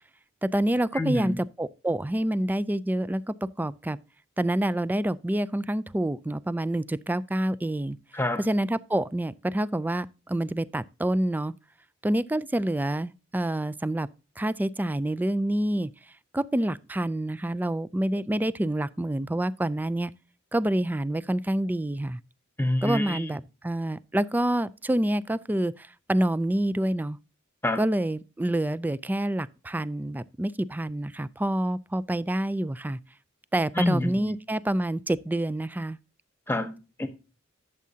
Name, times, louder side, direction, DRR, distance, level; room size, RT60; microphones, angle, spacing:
voice 1, 0.4-4.0 4.4-8.0 8.4-11.5 12.0-14.1 14.4-15.9 16.3-20.1 20.5-22.2 22.8-27.2 27.8-33.0 33.5-36.0, right 1 dB, 10° right, 0.3 m, -27 dB
voice 2, 0.9-1.4 8.1-8.4 22.6-23.3 27.6-27.8 33.7-34.3 36.5-37.1, left 1 dB, 10° left, 1.2 m, -27 dB
12.0 x 7.4 x 2.8 m
head